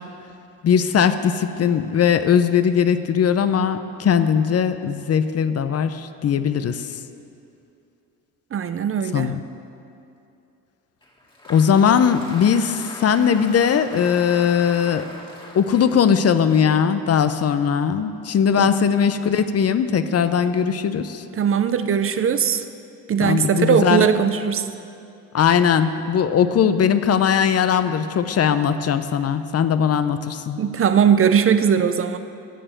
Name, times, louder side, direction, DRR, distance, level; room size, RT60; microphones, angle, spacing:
voice 1, 0.6-6.9 9.1-9.4 11.5-15.1 15.5-21.2 23.2-24.1 25.3-30.6, left 7 dB, 45° left, 11 dB, 0.6 m, -19 dB
voice 2, 8.5-9.3 18.6-18.7 21.4-22.6 23.1-24.7 30.6-32.2, right 7 dB, 40° right, 10 dB, 0.6 m, -19 dB
Applause, 11.0-17.3, left 1 dB, 15° left, 1.9 m, -41 dB
11.0 x 6.8 x 7.7 m, 2.7 s
supercardioid pair, 80°, 34 cm